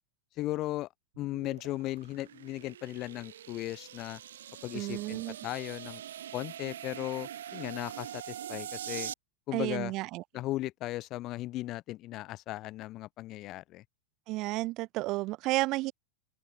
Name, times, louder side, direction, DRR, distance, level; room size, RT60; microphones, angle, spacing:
voice 1, 0.4-0.9 1.2-4.2 4.6-6.0 6.3-9.1 9.5-9.9 10.3-13.8, left 16 dB, 35° left, 1.8 m, -37 dB
sound 1, 1.1-9.1, right 10 dB, 60° right, 4.4 m, -43 dB
voice 2, 4.7-5.4 9.5-10.2 14.3-15.9, right 20 dB, 40° right, 2.3 m, -32 dB
open air
figure-of-eight pair, 90°, 0 cm